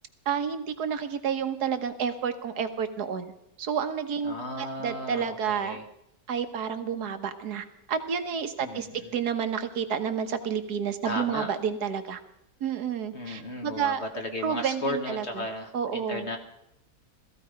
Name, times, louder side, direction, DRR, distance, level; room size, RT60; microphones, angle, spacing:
voice 1, 0.3-3.3 3.6-5.8 6.3-12.2 12.6-14.0 14.4-15.5 15.7-16.3, right 7 dB, 80° right, 9 dB, 1.7 m, -30 dB
voice 2, 4.2-5.8 8.6-9.1 11.0-11.5 13.1-16.4, left 1 dB, 45° left, 3 dB, 1.6 m, -35 dB
17.0 x 14.5 x 5.1 m, 0.81 s
omnidirectional pair, 1.7 m